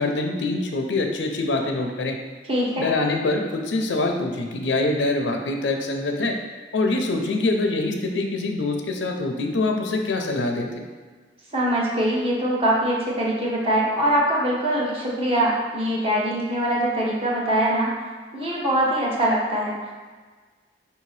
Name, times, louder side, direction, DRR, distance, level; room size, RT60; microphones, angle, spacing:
voice 1, 0.0-2.2 2.8-6.4 6.7-10.8, left 2 dB, 85° left, 3 dB, 0.5 m, -24 dB
voice 2, 2.5-2.9 11.5-17.9 18.3-19.9, right 1 dB, 30° right, -4 dB, 0.9 m, -23 dB
5.5 x 2.7 x 3.2 m, 1.4 s
head